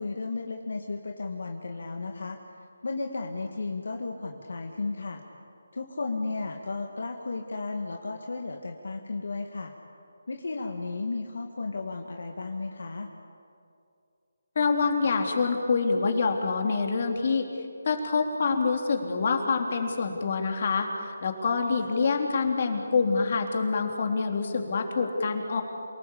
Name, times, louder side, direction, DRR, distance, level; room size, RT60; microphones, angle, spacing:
voice 1, 0.0-2.4 2.8-5.2 5.7-9.7 10.3-13.1, left 3 dB, 70° left, 3 dB, 2.1 m, -34 dB
voice 2, 14.5-17.5 17.8-25.6, left 4 dB, 45° left, 3 dB, 3.4 m, -26 dB
28.5 x 19.0 x 8.7 m, 2.4 s
figure-of-eight pair, 160°, 0 cm